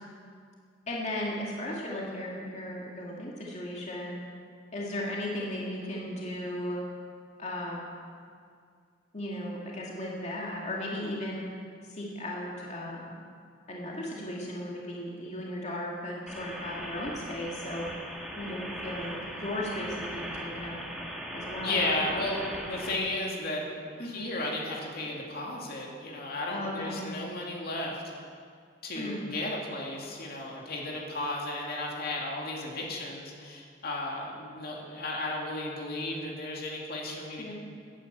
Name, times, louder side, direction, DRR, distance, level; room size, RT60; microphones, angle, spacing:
voice 1, 0.9-4.2 4.7-6.8 7.4-7.9 9.1-11.4 11.9-13.2 13.7-17.9 18.4-20.8 21.3-22.3 24.0-24.3 26.5-27.1 28.9-29.2 37.4-37.5, left 1 dB, 40° left, -3 dB, 2.2 m, -36 dB
sound 1, 16.3-23.0, equal, ahead, 1.8 m, -39 dB
voice 2, 21.6-28.0 28.8-37.5, left 2 dB, 55° left, -1 dB, 2.5 m, -34 dB
14.5 x 9.9 x 8.2 m, 2.2 s
head